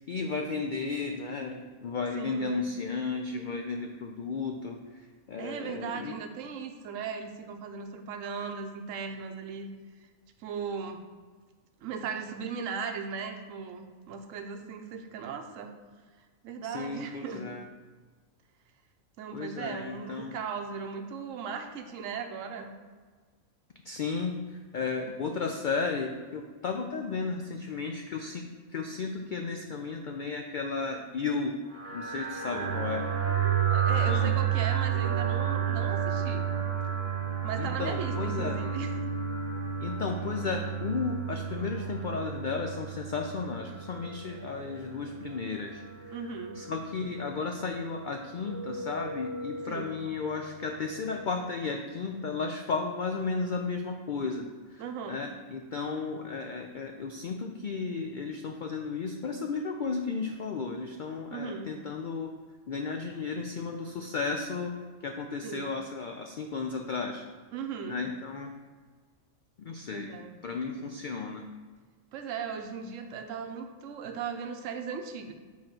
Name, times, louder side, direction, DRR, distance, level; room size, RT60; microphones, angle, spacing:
voice 1, 0.1-6.1 16.6-17.6 19.3-20.4 23.8-28.4 28.7-31.6 31.9-33.0 34.1-34.3 37.6-38.6 39.8-62.3 62.7-64.8 65.0-67.2 67.9-68.5 69.6-70.2 70.4-71.5, left 4 dB, 75° left, 3 dB, 0.4 m, -34 dB
voice 2, 2.1-2.6 5.4-9.7 10.4-11.0 11.8-15.7 16.4-17.5 19.2-22.7 32.4-32.8 33.7-36.5 37.4-38.9 46.1-46.6 49.7-49.9 54.8-55.2 61.3-61.7 65.4-65.7 67.5-68.0 69.9-70.4 72.1-75.3, right 6 dB, 70° right, 5 dB, 1.0 m, -37 dB
sound 1, 31.7-51.4, right 8 dB, 40° right, 0.9 m, -32 dB
7.1 x 3.1 x 5.9 m, 1.5 s
omnidirectional pair, 1.4 m